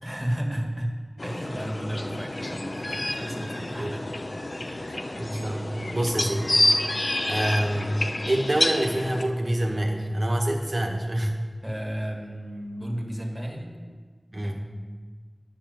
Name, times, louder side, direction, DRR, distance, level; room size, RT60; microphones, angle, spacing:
voice 1, 0.0-4.0 4.6-4.9 11.6-13.8 14.4-14.6, equal, 10° right, 1 dB, 2.0 m, -33 dB
sound 1, 1.2-9.2, left 1 dB, 65° left, 0.8 m, -28 dB
voice 2, 5.2-6.5 7.2-7.9 8.3-11.3 14.3-14.6, right 1 dB, 60° right, 1 dB, 1.5 m, -26 dB
9.9 x 6.7 x 7.9 m, 1.5 s
wide cardioid pair, 45°, 0 cm